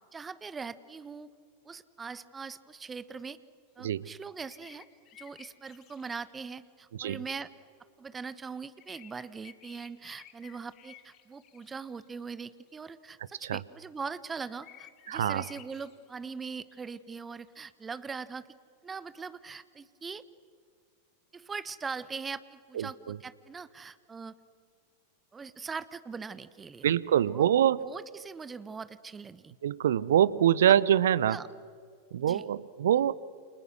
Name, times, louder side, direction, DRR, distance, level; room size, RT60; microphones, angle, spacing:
voice 1, 0.1-1.3 1.6-3.4 3.8-4.8 5.2-7.5 8.0-18.4 18.8-20.2 21.3-24.3 25.3-26.9 27.3-27.5 27.8-29.5 30.7-30.8 31.3-31.5 32.2-32.4, right 5 dB, 15° right, 16 dB, 1.1 m, -41 dB
sound 1, 4.4-6.4 8.8-12.7 14.4-17.2 17.5-17.6, left 12 dB, 35° left, 2.1 m, -55 dB
voice 2, 15.1-15.4 22.8-23.2 26.8-27.8 29.6-31.4 32.1-33.1, right 10 dB, 60° right, 21 dB, 0.7 m, -25 dB
29.5 x 28.0 x 6.3 m, 2.1 s
figure-of-eight pair, 90°, 0 cm